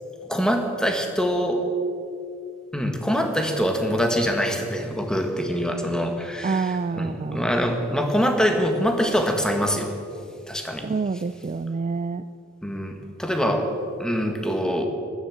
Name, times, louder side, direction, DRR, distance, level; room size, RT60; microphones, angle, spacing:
voice 1, 0.3-1.7 2.7-10.0 10.5-10.9 12.6-13.7 14.0-14.9, equal, 5° left, 4 dB, 1.5 m, -24 dB
voice 2, 6.4-7.5 10.8-12.2, right 4 dB, 35° right, 13 dB, 0.3 m, -27 dB
14.5 x 11.5 x 7.5 m, 2.5 s
head